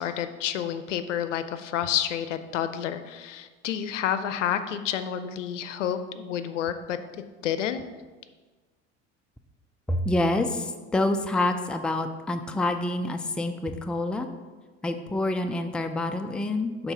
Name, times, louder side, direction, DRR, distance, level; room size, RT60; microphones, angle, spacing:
voice 1, 0.0-7.0 7.4-7.8, left 9 dB, 80° left, 11 dB, 0.6 m, -29 dB
voice 2, 9.9-14.3 14.8-16.9, left 2 dB, 5° left, 6 dB, 0.4 m, -27 dB
6.8 x 3.9 x 5.6 m, 1.4 s
hypercardioid pair, 75°, 36 cm